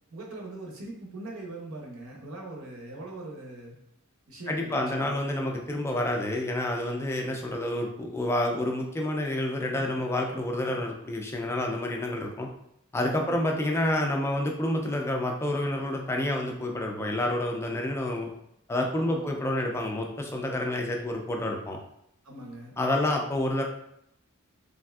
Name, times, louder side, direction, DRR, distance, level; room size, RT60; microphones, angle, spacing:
voice 1, 0.1-3.7 4.3-5.3 13.1-13.4 19.0-19.4 22.2-22.8, right 2 dB, 70° right, -1 dB, 0.6 m, -41 dB
voice 2, 4.5-12.5 12.9-18.3 18.7-21.8 22.8-23.6, left 1 dB, 10° left, 1 dB, 0.3 m, -29 dB
3.2 x 2.5 x 2.2 m, 0.76 s
head